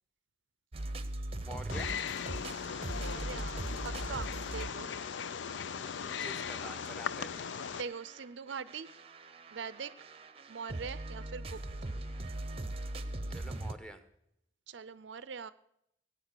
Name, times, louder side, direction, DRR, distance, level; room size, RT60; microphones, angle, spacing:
sound 1, 0.7-6.9 7.3-13.7, right 1 dB, 30° right, 0.8 m, -41 dB
voice 1, 1.4-1.9 5.8-7.5 13.3-14.0, equal, 5° left, 9 dB, 1.1 m, -47 dB
Wild animals, 1.7-7.8, left 7 dB, 65° left, 0.4 m, -38 dB
voice 2, 2.9-4.9 7.8-8.9 9.5-10.1 10.5-11.6 14.7-15.5, right 6 dB, 65° right, 16 dB, 0.5 m, -42 dB
17.5 x 8.8 x 6.7 m, 0.79 s
head